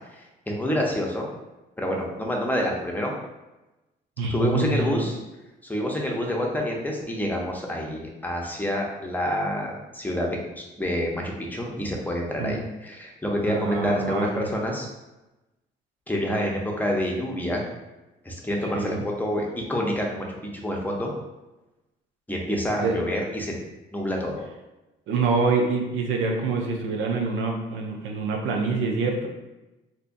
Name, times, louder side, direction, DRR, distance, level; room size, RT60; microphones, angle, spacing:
voice 1, 0.1-1.3 1.8-3.1 4.3-5.2 5.6-14.9 16.1-17.6 18.2-21.1 22.3-23.6 23.9-24.4, equal, 10° left, -1 dB, 0.7 m, -27 dB
voice 2, 4.2-5.0 12.4-12.6 13.5-14.5 18.6-19.0 22.8-23.0 25.1-29.3, right 4 dB, 85° right, 1 dB, 0.6 m, -26 dB
3.5 x 2.7 x 2.6 m, 1.0 s
cardioid pair, 90°, 20 cm